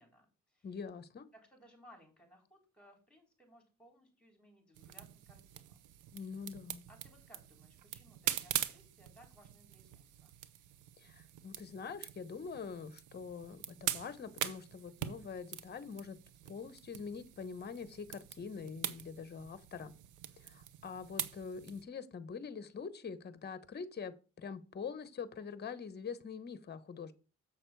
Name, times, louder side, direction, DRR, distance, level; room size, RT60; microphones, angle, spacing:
voice 1, 0.0-0.7 1.3-5.8 6.2-6.4 6.9-10.3, equal, 5° left, 4.3 m, -62 dB
voice 2, 0.6-1.3 6.1-6.8 11.0-16.2 16.5-19.9 20.4-27.1, left 5 dB, 35° left, 0.9 m, -44 dB
sound 1, 4.7-21.8, right 11 dB, 85° right, 0.7 m, -43 dB
7.2 x 6.5 x 4.6 m
cardioid pair, 90°, 30 cm